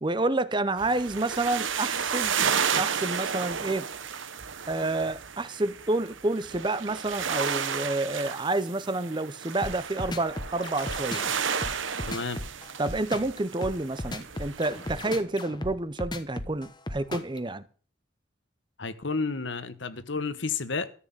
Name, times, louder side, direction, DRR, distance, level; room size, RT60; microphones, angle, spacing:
voice 1, 0.0-2.4 2.7-3.9 4.7-11.3 12.8-17.6, right 2 dB, 25° right, 0.6 m, -29 dB
sound 1, 0.8-15.2, right 7 dB, 75° right, 1.1 m, -32 dB
sound 2, 9.6-17.4, left 1 dB, 20° left, 1.1 m, -36 dB
voice 2, 12.1-12.4 18.8-20.9, left 4 dB, 65° left, 1.2 m, -31 dB
14.0 x 6.2 x 8.8 m
head